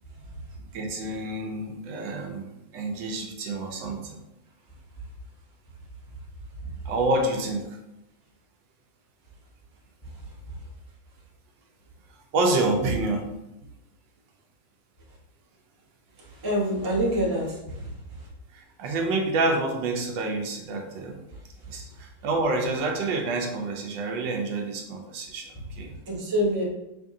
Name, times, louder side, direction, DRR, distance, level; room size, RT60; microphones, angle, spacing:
voice 1, 0.7-2.5 2.7-4.2 6.8-7.8 12.3-13.3 18.5-21.2 21.7-26.0, right 2 dB, 75° right, 2 dB, 1.3 m, -28 dB
voice 2, 16.2-17.9 26.1-26.6, equal, 20° right, -4 dB, 0.7 m, -26 dB
5.3 x 2.6 x 3.6 m, 0.92 s
omnidirectional pair, 2.1 m